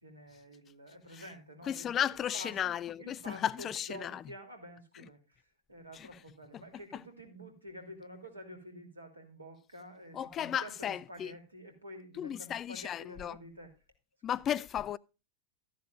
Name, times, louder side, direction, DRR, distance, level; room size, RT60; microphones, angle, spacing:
voice 1, 0.0-2.6 3.0-13.7, equal, 80° right, 3.0 m, -49 dB
voice 2, 1.7-4.2 5.9-6.1 6.9-7.0 10.1-11.3 12.2-13.4 14.2-15.0, left 10 dB, 30° left, 0.4 m, -34 dB
13.0 x 10.5 x 2.5 m
figure-of-eight pair, 90°, 0 cm